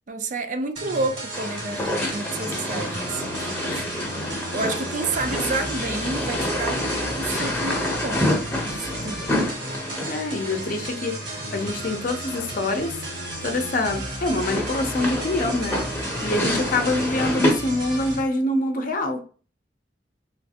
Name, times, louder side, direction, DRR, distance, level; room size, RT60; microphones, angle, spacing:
voice 1, 0.1-4.1 4.5-8.3 8.6-9.4, right 3 dB, 45° right, 0.5 m, -30 dB
sound 1, 0.7-18.2, right 1 dB, 75° right, 1.7 m, -34 dB
sound 2, 1.3-17.5, left 1 dB, 10° left, 0.8 m, -29 dB
voice 2, 10.1-13.0 13.4-15.8 16.2-19.2, left 2 dB, 50° left, 0.6 m, -25 dB
3.1 x 3.1 x 2.8 m
head